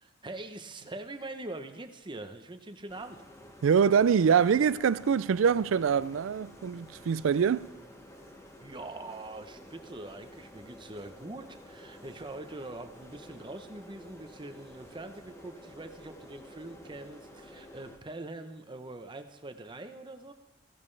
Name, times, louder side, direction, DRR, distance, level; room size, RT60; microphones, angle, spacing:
voice 1, 0.0-3.2 8.6-20.3, right 2 dB, 25° right, 0.8 m, -43 dB
sound 1, 2.9-18.0, equal, 15° left, 1.1 m, -51 dB
voice 2, 3.6-7.7, right 7 dB, 80° right, 0.4 m, -24 dB
15.5 x 14.0 x 3.3 m
head